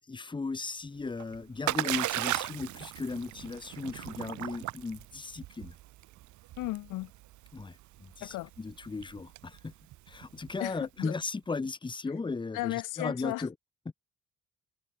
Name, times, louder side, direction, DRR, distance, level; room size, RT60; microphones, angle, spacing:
voice 1, 0.1-5.7 7.5-9.7 10.1-13.5, left 4 dB, 15° left, 0.8 m, -36 dB
Splash splatter, 1.0-10.8, right 16 dB, 75° right, 0.7 m, -37 dB
voice 2, 6.6-7.1 8.2-8.5 10.6-11.1 12.5-13.5, left 19 dB, 85° left, 0.6 m, -35 dB
cardioid pair, 90°, 30 cm